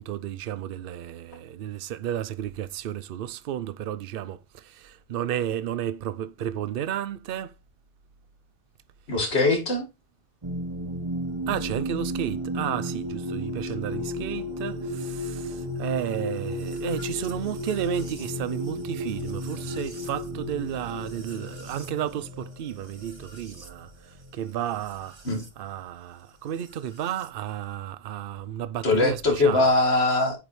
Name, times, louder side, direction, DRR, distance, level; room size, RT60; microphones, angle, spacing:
voice 1, 0.0-4.4 4.8-7.5 11.5-23.9 24.3-25.2 25.6-29.6, right 10 dB, 60° right, 0.7 m, -32 dB
voice 2, 9.1-9.8 25.2-25.4 28.8-30.4, left 2 dB, 75° left, 2.2 m, -21 dB
sound 1, 10.4-25.5 26.6-27.3, equal, 25° right, 1.0 m, -34 dB
9.1 x 5.0 x 3.1 m
omnidirectional pair, 1.1 m